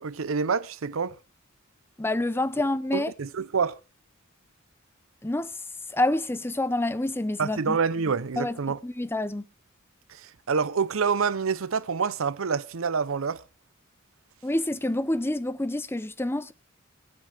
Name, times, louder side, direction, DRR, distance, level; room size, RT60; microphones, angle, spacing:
voice 1, 0.0-1.2 2.9-3.8 7.4-8.8 10.1-13.4, right 5 dB, 80° right, 0.6 m, -27 dB
voice 2, 2.0-3.1 5.2-5.6 5.9-7.8 8.4-9.4 14.4-16.5, left 1 dB, 10° left, 0.6 m, -28 dB
22.5 x 7.7 x 3.4 m
head